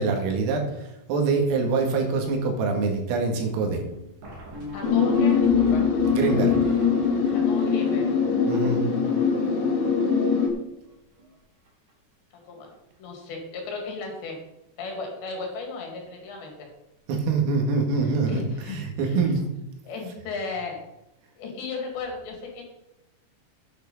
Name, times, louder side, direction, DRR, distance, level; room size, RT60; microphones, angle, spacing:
voice 1, 0.0-3.8 6.1-6.5 8.5-8.9 17.1-19.5, right 4 dB, 85° right, 2 dB, 4.6 m, -25 dB
sound 1, 1.5-9.7 10.0-10.1 10.3-10.5 10.8-11.4 11.7-11.9 12.7-12.8 13.2-13.3 13.6-13.8 16.0-16.1 18.5-18.6, equal, 50° right, 4.2 m, -43 dB
voice 2, 4.7-5.9 7.3-8.1 9.5-9.8 12.5-12.7 13.0-14.4 14.8-16.7 18.3-19.2 19.8-20.9 21.4-22.6, left 3 dB, 65° left, 2 dB, 4.2 m, -35 dB
sound 2, 4.8-10.5, left 6 dB, 45° left, 2.9 m, -22 dB
9.8 x 9.4 x 5.4 m, 0.92 s
omnidirectional pair, 5.9 m